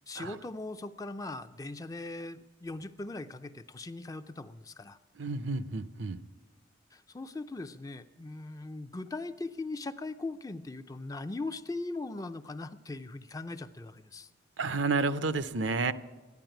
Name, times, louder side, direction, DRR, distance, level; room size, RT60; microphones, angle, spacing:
voice 1, 0.1-5.0 6.9-14.3, left 2 dB, 20° left, 10 dB, 0.4 m, -40 dB
voice 2, 5.2-6.2 14.6-15.9, right 3 dB, 75° right, 13 dB, 0.6 m, -30 dB
13.5 x 10.5 x 9.0 m, 1.2 s
head